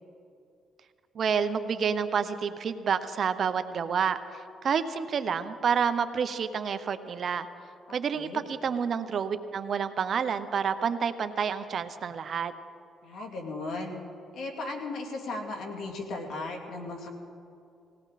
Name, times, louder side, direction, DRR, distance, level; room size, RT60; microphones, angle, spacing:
voice 1, 1.1-7.5 7.9-12.5, right 6 dB, 55° right, 11 dB, 0.8 m, -29 dB
voice 2, 7.9-8.4 13.0-14.0 14.3-17.1, left 2 dB, 70° left, 2 dB, 2.6 m, -36 dB
20.0 x 17.0 x 4.2 m, 2.5 s
cardioid pair, 90°, 0 cm